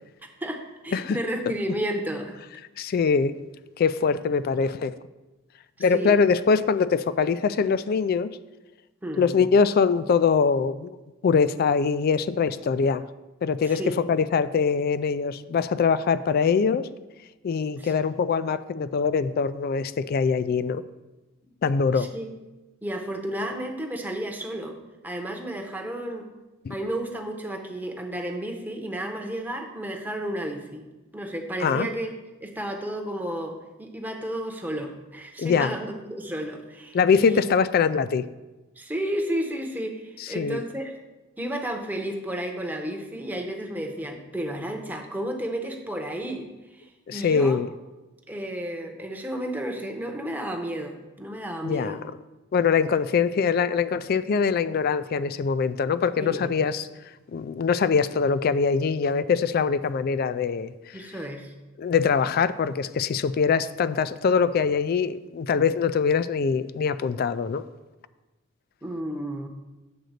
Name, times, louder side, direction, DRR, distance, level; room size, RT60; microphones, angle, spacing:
voice 1, 0.4-2.4 5.9-6.2 9.0-9.4 13.6-14.0 17.8-17.9 21.9-22.3 22.8-24.8 25.0-26.3 26.7-30.9 31.1-32.1 32.4-37.4 38.8-40.9 41.4-47.6 48.3-52.0 56.2-56.5 60.9-61.5 68.8-69.5, right 1 dB, 10° right, 3 dB, 0.8 m, -32 dB
voice 2, 2.8-3.3 3.8-4.9 5.8-8.3 9.2-10.9 11.2-13.0 13.4-16.9 17.4-20.8 21.6-22.1 26.6-26.8 31.6-31.9 35.4-35.7 36.9-38.3 40.2-40.6 47.1-47.7 51.6-52.0 52.5-56.9 57.3-61.0 61.8-67.6, left 5 dB, 50° left, 15 dB, 0.3 m, -23 dB
7.8 x 3.9 x 6.5 m, 1.1 s
head